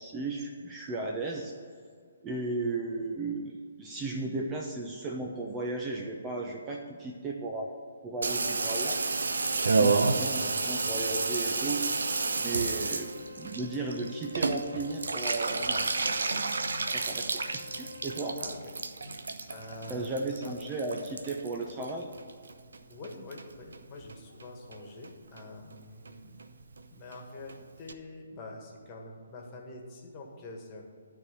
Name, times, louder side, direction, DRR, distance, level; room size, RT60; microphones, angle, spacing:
voice 1, 0.0-1.5 2.2-7.7 8.0-9.0 9.8-11.8 12.4-16.4 16.9-17.3 17.5-18.4 19.9-22.1, right 3 dB, 15° right, 0 dB, 0.8 m, -35 dB
Water tap faucet / Bathtub (filling or washing), 8.2-22.8 23.0-23.8 24.1-24.2 24.4-24.5 24.7-25.1 25.4-25.5 25.7-25.8 26.1-26.2 26.4-26.5 26.7-26.8 27.1-27.2 27.5-27.6 27.9-28.0, right 3 dB, 65° right, 0.7 m, -31 dB
sound 1, 9.3-18.3, left 4 dB, 85° right, 1.1 m, -49 dB
voice 2, 18.4-18.7 19.5-20.1 20.4-20.6 22.9-26.4 26.9-30.8, left 2 dB, 25° left, 0 dB, 1.8 m, -46 dB
13.0 x 4.6 x 7.8 m, 2.1 s
figure-of-eight pair, 135°, 0 cm